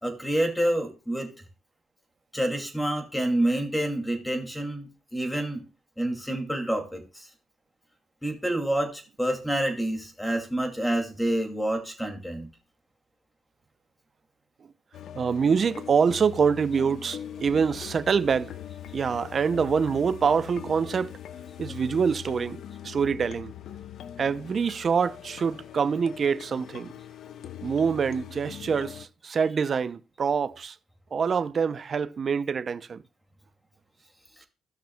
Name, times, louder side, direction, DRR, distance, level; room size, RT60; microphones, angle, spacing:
voice 1, 0.0-1.3 2.3-5.6 6.0-7.3 8.2-12.5, right 1 dB, 5° left, 2.4 m, -28 dB
sound 1, 14.9-29.0, left 10 dB, 70° left, 0.7 m, -42 dB
voice 2, 15.2-18.5 18.9-21.1 21.6-23.5 24.2-26.9 27.6-30.8 31.1-33.0, right 6 dB, 45° right, 0.5 m, -25 dB
16.5 x 6.0 x 2.3 m
cardioid pair, 90°, 0 cm